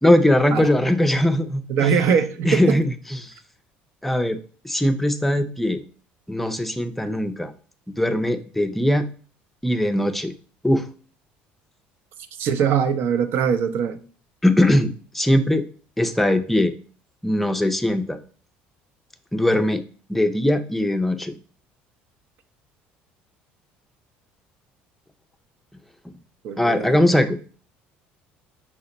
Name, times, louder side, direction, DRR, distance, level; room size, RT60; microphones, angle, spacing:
voice 1, 0.0-2.0 2.5-2.9 3.2-3.3 4.0-4.4 4.6-5.8 6.3-7.5 7.9-9.1 9.6-10.3 10.6-10.8 14.4-15.6 16.0-16.7 17.2-18.2 19.3-19.8 20.1-21.4 26.6-27.4, left 1 dB, 5° left, 8 dB, 0.4 m, -20 dB
voice 2, 1.7-2.8 12.4-14.0 26.4-27.1, right 7 dB, 60° right, 11 dB, 0.5 m, -22 dB
5.8 x 2.1 x 3.9 m, 0.41 s
cardioid pair, 110°, 4 cm